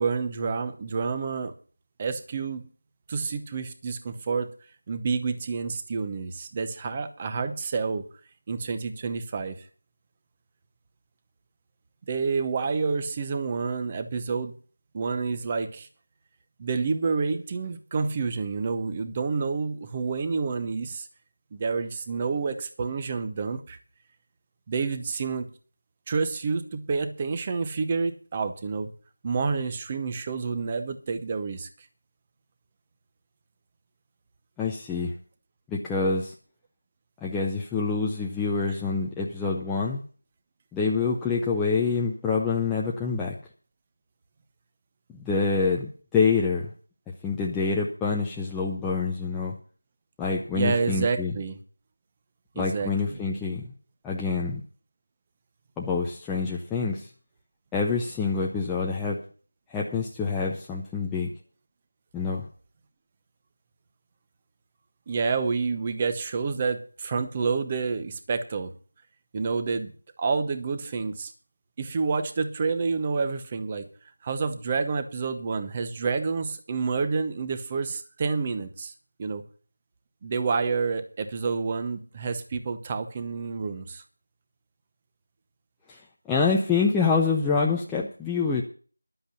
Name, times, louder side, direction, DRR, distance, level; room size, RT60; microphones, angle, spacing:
voice 1, 0.0-1.5 2.0-2.7 3.1-4.5 4.9-8.0 8.5-9.6 12.1-14.6 14.9-15.9 16.6-21.1 21.5-23.8 24.7-25.5 26.1-28.9 29.2-31.7 50.5-51.6 52.6-53.2 65.1-68.7 69.3-69.9 70.2-71.3 71.8-73.9 74.2-78.9 79.2-79.4 80.2-84.0, right 4 dB, 15° right, 9 dB, 0.9 m, -28 dB
voice 2, 34.6-35.1 35.7-36.3 37.2-40.0 40.7-43.4 45.2-46.7 47.2-49.5 50.2-51.3 52.6-53.7 54.0-54.6 55.8-57.1 57.7-59.2 59.7-61.3 62.1-62.5 85.9-86.0 86.3-88.6, left 4 dB, 5° left, -4 dB, 0.5 m, -26 dB
11.5 x 8.0 x 6.9 m, 0.41 s
figure-of-eight pair, 175°, 0 cm